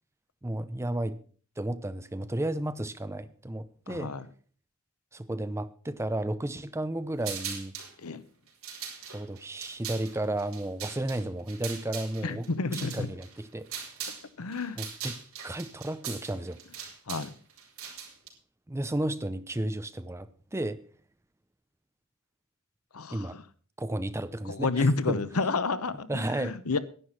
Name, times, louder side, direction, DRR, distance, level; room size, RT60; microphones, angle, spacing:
voice 1, 0.4-1.2 1.6-4.1 5.1-7.7 9.1-12.5 12.7-13.7 14.8-15.2 15.4-16.6 18.7-20.8 23.1-23.4 23.8-25.2 26.1-26.6, right 1 dB, 15° right, 0.6 m, -33 dB
voice 2, 3.9-4.3 8.0-8.2 12.2-13.1 14.4-14.8 17.1-17.3 22.9-23.4 24.5-26.8, left 3 dB, 90° left, 0.9 m, -30 dB
sound 1, 7.2-7.9 8.5-14.3 14.5-18.3, right 7 dB, 70° right, 4.0 m, -40 dB
11.0 x 9.8 x 5.8 m
head